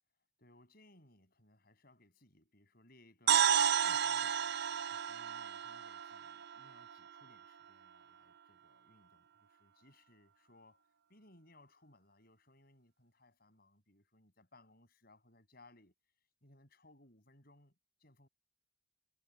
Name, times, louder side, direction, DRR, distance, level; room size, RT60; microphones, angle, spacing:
voice 1, 0.4-4.5 4.9-15.9 16.4-18.3, left 1 dB, 45° left, 7.9 m, -65 dB
sound 1, 3.3-7.2, right 8 dB, 50° right, 0.5 m, -32 dB
head